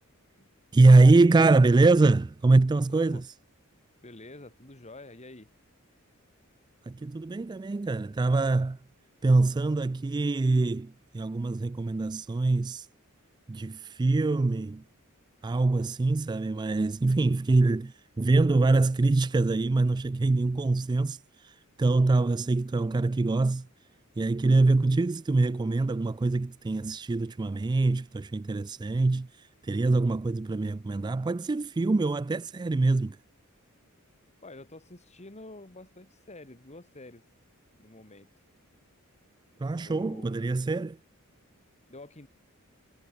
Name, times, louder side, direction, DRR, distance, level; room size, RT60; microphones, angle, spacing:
voice 1, 0.7-3.3 6.9-8.8 9.2-12.9 13.5-14.8 15.4-23.7 24.2-33.2 39.6-41.0, right 3 dB, 20° right, 0.3 m, -24 dB
voice 2, 2.9-3.2 4.0-5.5 34.4-37.2 37.8-38.3 39.7-40.5 41.9-42.3, left 2 dB, 30° left, 2.7 m, -48 dB
head